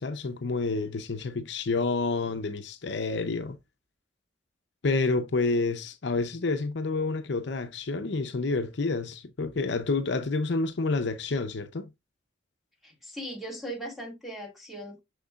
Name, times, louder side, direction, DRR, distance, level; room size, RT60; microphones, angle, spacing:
voice 1, 0.0-3.6 4.8-11.9, left 3 dB, 65° left, 0.6 m, -29 dB
voice 2, 12.8-15.0, right 1 dB, ahead, 2.0 m, -39 dB
6.6 x 6.4 x 2.4 m
head